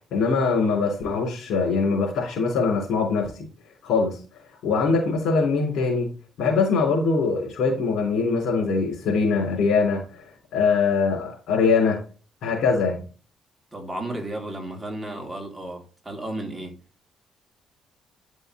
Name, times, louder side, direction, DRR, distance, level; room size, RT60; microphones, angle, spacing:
voice 1, 0.0-3.3 3.8-4.2 4.6-6.1 6.4-12.0 12.4-13.0, left 4 dB, 75° left, 3.3 m, -22 dB
voice 2, 13.7-16.7, right 1 dB, 15° right, 3.0 m, -33 dB
10.5 x 5.5 x 3.1 m
cardioid pair, 90°, 0 cm